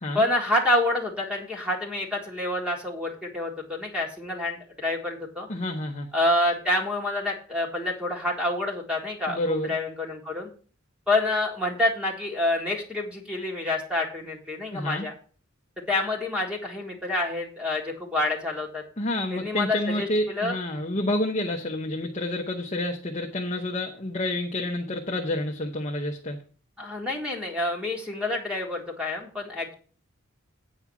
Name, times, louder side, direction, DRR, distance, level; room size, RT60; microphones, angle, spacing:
voice 1, 0.1-5.5 6.1-10.5 11.1-15.1 15.8-18.8 19.3-20.6 26.8-29.7, left 1 dB, 5° right, 0 dB, 1.8 m, -27 dB
voice 2, 5.5-6.1 9.3-9.7 14.7-15.1 19.0-26.4, left 1 dB, 30° left, 1 dB, 0.8 m, -29 dB
8.8 x 4.8 x 7.0 m, 0.40 s
head